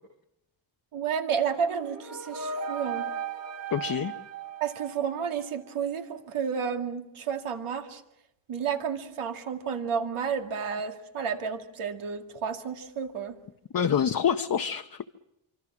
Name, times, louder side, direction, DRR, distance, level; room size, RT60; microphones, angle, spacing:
voice 1, 0.9-3.1 4.6-8.0 8.5-13.4, right 7 dB, 90° right, 4 dB, 2.3 m, -31 dB
sound 1, 1.6-5.5, right 5 dB, 30° right, 1.5 m, -37 dB
voice 2, 3.7-4.1 13.7-15.1, left 8 dB, 45° left, 7 dB, 0.8 m, -26 dB
25.5 x 25.5 x 6.1 m, 0.85 s
wide cardioid pair, 135°, 48 cm